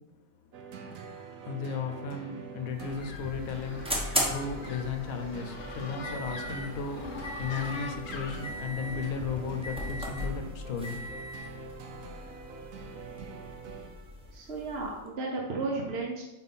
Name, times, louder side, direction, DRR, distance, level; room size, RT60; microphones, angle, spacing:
sound 1, 0.5-14.3, right 4 dB, 75° right, 1.1 m, -44 dB
voice 1, 1.4-11.0, left 5 dB, 85° left, 6 dB, 1.2 m, -35 dB
sound 2, 2.7-15.1, equal, 5° right, 0.8 m, -38 dB
sound 3, 2.8-10.2, left 4 dB, 55° left, 0.8 m, -43 dB
voice 2, 14.3-16.2, right 3 dB, 55° right, -2 dB, 1.0 m, -33 dB
4.4 x 4.1 x 5.5 m, 1.0 s
omnidirectional pair, 1.4 m